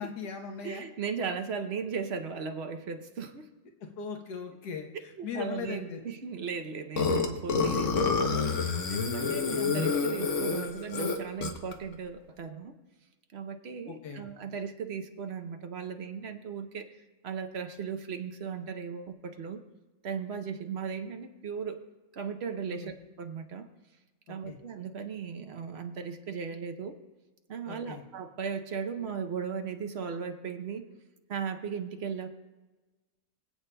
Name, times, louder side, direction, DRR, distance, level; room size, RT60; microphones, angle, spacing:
voice 1, 0.0-0.8 4.0-6.0 13.9-14.3 22.7-22.9 24.3-24.6 27.7-28.0, left 6 dB, 85° left, 3 dB, 1.6 m, -39 dB
voice 2, 0.6-3.5 5.2-12.8 13.3-16.9 17.2-19.6 20.0-21.8 22.1-23.7 24.3-27.0 27.5-30.9 31.3-32.3, right 6 dB, 55° right, 7 dB, 0.7 m, -37 dB
Burping eructation, 7.0-11.7, left 4 dB, 55° left, 1.1 m, -28 dB
24.5 x 8.3 x 2.2 m, 1.2 s
omnidirectional pair, 1.7 m